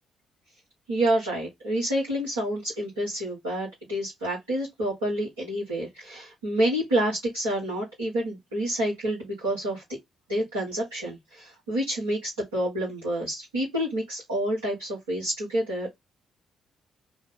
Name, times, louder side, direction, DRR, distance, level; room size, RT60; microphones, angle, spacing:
voice 1, 0.9-9.8 10.3-16.0, right 1 dB, 80° right, 1.4 m, -28 dB
5.0 x 2.4 x 3.7 m
figure-of-eight pair, 40°, 0 cm